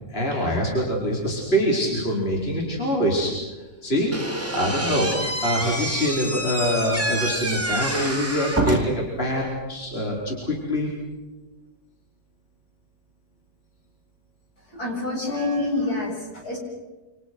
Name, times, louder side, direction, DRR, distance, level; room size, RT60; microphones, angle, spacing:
voice 1, 0.1-10.9, equal, 30° left, -2 dB, 4.9 m, -25 dB
Slam / Squeak, 4.1-9.1, right 1 dB, 5° right, 3.1 m, -27 dB
voice 2, 14.7-16.6, left 2 dB, 55° left, -1 dB, 8.0 m, -27 dB
29.0 x 27.5 x 6.2 m, 1.2 s
omnidirectional pair, 2.0 m